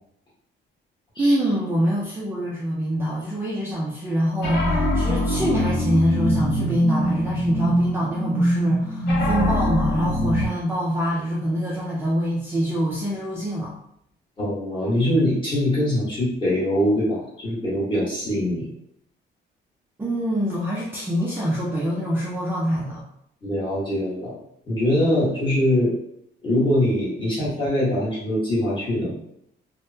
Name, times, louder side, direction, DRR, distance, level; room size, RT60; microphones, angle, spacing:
voice 1, 1.2-13.7 20.0-23.0, equal, 10° right, -6 dB, 0.4 m, -25 dB
sound 1, 4.4-10.5, equal, 60° left, 0.8 m, -23 dB
voice 2, 14.4-18.7 23.4-24.3 24.6-25.9 26.4-29.1, left 1 dB, 25° left, -8 dB, 1.2 m, -23 dB
3.4 x 2.1 x 2.7 m, 0.74 s
cardioid pair, 175°, 20 cm